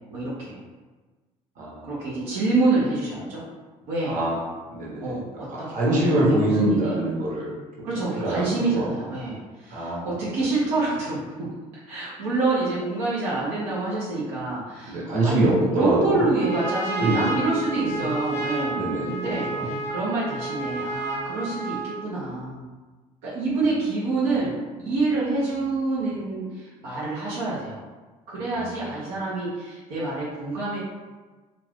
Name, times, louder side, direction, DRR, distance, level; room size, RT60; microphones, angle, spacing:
voice 1, 0.1-0.6 1.8-3.4 3.9-4.2 5.0-5.7 6.1-6.2 6.4-7.0 7.8-11.2 11.9-18.8 19.1-22.6 23.2-27.8 28.3-30.8, right 3 dB, 85° right, -8 dB, 0.8 m, -27 dB
voice 2, 1.6-1.9 4.0-4.4 4.7-5.1 5.5-7.9 8.2-8.9 9.7-10.1 14.9-16.3 17.0-17.4 17.8-18.1 18.7-19.2 19.5-19.7 28.5-28.7, right 1 dB, 60° right, -5 dB, 1.1 m, -24 dB
Trumpet, 16.1-22.1, right 3 dB, 20° left, 0.7 m, -31 dB
2.4 x 2.4 x 3.5 m, 1.3 s
supercardioid pair, 85°, 16 cm